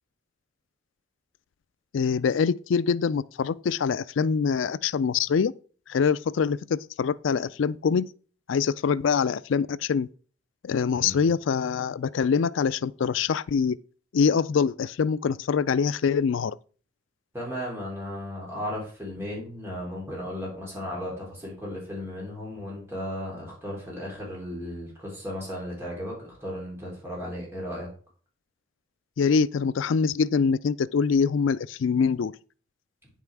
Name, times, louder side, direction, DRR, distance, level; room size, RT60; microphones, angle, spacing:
voice 1, 1.9-5.5 5.9-8.1 8.5-10.1 10.6-13.8 14.1-16.6 29.2-32.3, left 6 dB, 70° left, 0.4 m, -24 dB
voice 2, 10.9-11.3 17.3-27.9, left 1 dB, 10° right, 3.3 m, -35 dB
9.3 x 5.6 x 4.6 m
head